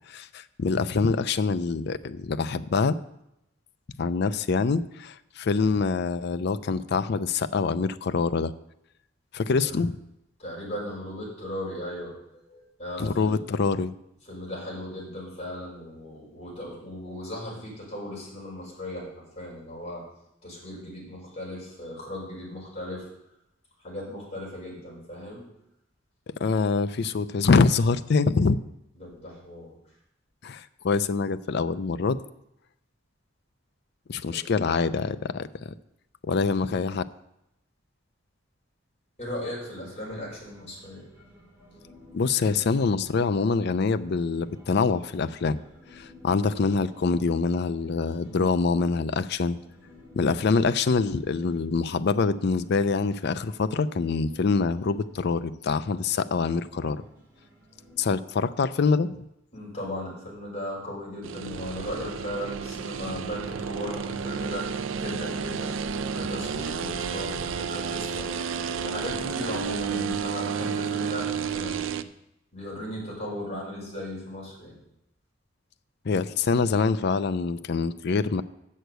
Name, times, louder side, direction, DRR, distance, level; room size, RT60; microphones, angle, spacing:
voice 1, 0.1-3.0 4.0-8.5 9.3-10.0 13.0-13.9 26.4-28.6 30.4-32.2 34.1-35.7 36.2-37.0 42.1-45.6 45.9-49.6 50.2-57.0 58.0-59.2 76.0-78.4, left 4 dB, 60° left, 13 dB, 0.4 m, -25 dB
voice 2, 10.4-12.1 12.5-13.4 14.3-20.0 20.4-23.1 23.8-25.4 29.0-29.7 34.3-34.4 39.2-41.0 59.5-68.3 68.8-72.0 72.5-74.8, left 1 dB, 35° left, -4 dB, 5.0 m, -37 dB
Human voice, 39.9-58.1, left 2 dB, 10° right, 3.5 m, -53 dB
sound 1, 61.2-72.0, right 6 dB, 80° right, 0.5 m, -31 dB
8.0 x 6.5 x 7.8 m, 0.83 s
head